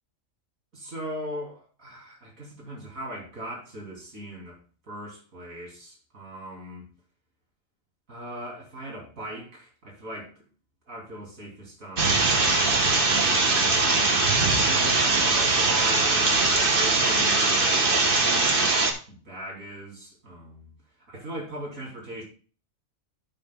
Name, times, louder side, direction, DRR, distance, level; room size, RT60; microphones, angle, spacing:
voice 1, 0.7-4.6 4.9-6.9 8.1-10.5 10.9-13.7 14.4-17.9 18.1-18.7 19.1-20.7 21.1-22.2, right 1 dB, 75° right, -3 dB, 3.6 m, -39 dB
sound 1, 12.0-18.9, right 3 dB, 45° right, 1.3 m, -21 dB
12.5 x 6.3 x 2.3 m, 0.38 s
omnidirectional pair, 1.4 m